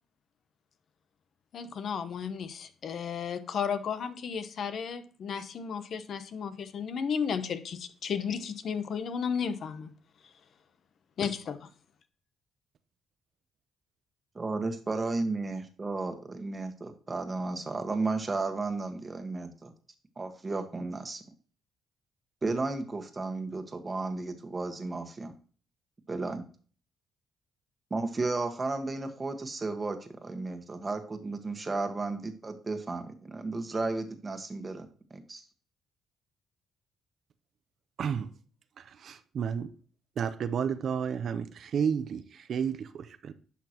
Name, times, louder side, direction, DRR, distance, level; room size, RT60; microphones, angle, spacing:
voice 1, 1.5-9.9 11.2-11.7, left 7 dB, 60° left, 0.9 m, -33 dB
voice 2, 14.3-19.7 20.2-21.2 22.4-25.3 26.1-26.4 27.9-35.4, right 3 dB, 25° right, 1.4 m, -33 dB
voice 3, 38.0-38.3 38.8-39.7 40.2-43.3, right 7 dB, 60° right, 0.6 m, -32 dB
11.0 x 5.9 x 2.9 m
cardioid pair, 90°, 0 cm